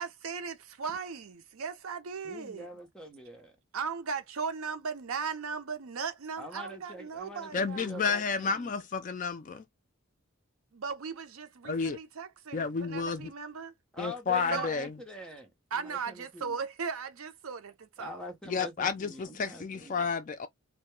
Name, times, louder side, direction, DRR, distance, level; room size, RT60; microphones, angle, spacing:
voice 1, 0.0-2.7 3.7-8.1 10.7-13.7 14.5-14.7 15.7-18.2, right 5 dB, 75° right, 0.6 m, -37 dB
voice 2, 2.2-3.5 6.4-8.8 13.9-16.6 18.0-20.0, equal, 5° left, 0.7 m, -45 dB
voice 3, 7.5-9.6 11.6-12.0 12.5-13.3 14.0-15.0 18.5-20.5, left 5 dB, 35° left, 0.3 m, -31 dB
2.2 x 2.2 x 3.0 m
head